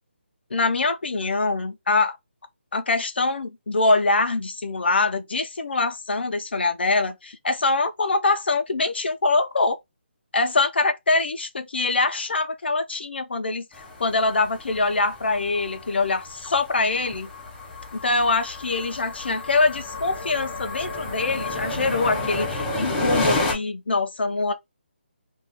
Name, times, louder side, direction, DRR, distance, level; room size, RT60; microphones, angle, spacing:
voice 1, 0.5-2.2 2.7-9.8 10.3-13.7 14.0-17.3 18.0-24.5, left 3 dB, 70° left, 0.6 m, -24 dB
sound 1, 13.7-23.5, left 2 dB, 5° left, 0.6 m, -31 dB
2.7 x 2.4 x 3.5 m
hypercardioid pair, 175°, 6 cm